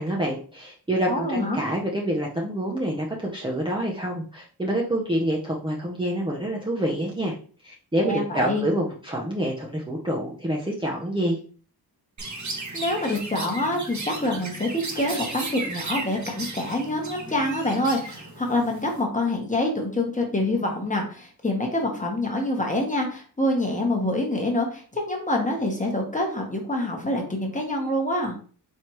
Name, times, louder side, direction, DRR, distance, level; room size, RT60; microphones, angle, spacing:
voice 1, 0.0-7.3 7.6-11.4, right 1 dB, 15° right, -3 dB, 0.7 m, -27 dB
voice 2, 1.1-1.6 8.0-8.7 12.7-28.4, left 1 dB, 20° left, 1 dB, 1.1 m, -26 dB
Chirp tweet, 12.2-19.0, right 2 dB, 45° right, 1.1 m, -35 dB
4.5 x 3.3 x 3.0 m, 0.41 s
wide cardioid pair, 125°, 40 cm